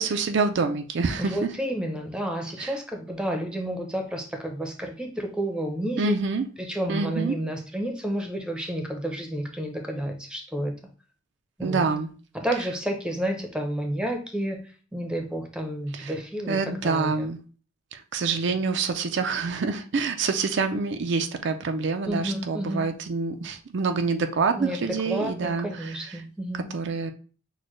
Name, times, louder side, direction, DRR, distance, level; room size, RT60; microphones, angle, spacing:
voice 1, 0.0-1.5 2.6-2.7 6.0-6.4 6.9-7.4 11.6-12.1 15.9-16.1 16.5-17.4 17.9-26.2 26.7-27.1, right 4 dB, 65° right, 0.4 m, -27 dB
voice 2, 1.2-6.2 6.6-10.8 11.6-11.9 12.3-14.6 14.9-17.3 22.1-22.9 24.6-26.7, right 1 dB, 5° right, 0.7 m, -30 dB
6.3 x 2.2 x 3.1 m
head